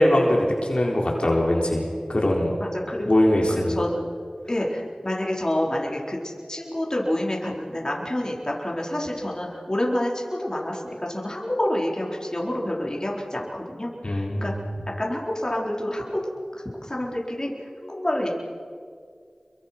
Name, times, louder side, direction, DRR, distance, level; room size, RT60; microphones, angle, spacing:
voice 1, 0.0-1.8 2.1-2.5 3.1-3.8 14.0-14.6, left 1 dB, 55° left, -2 dB, 4.2 m, -21 dB
voice 2, 2.6-3.2 3.5-4.0 4.5-6.2 6.5-14.5 15.0-16.2 16.5-17.5 17.8-18.3, left 1 dB, 30° left, -2 dB, 4.6 m, -28 dB
28.0 x 23.0 x 6.1 m, 2.1 s
wide cardioid pair, 55°, 2 cm